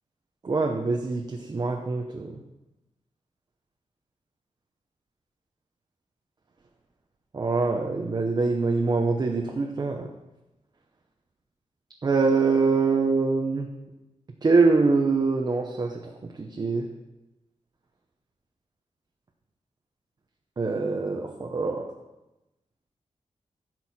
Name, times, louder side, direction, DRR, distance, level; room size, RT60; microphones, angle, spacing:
voice 1, 0.4-2.3 7.3-10.1 12.0-13.7 14.4-16.0 16.4-16.9 20.6-21.8, right 4 dB, 35° right, 1 dB, 0.8 m, -24 dB
15.0 x 6.3 x 4.3 m, 0.98 s
wide cardioid pair, 160°, 12 cm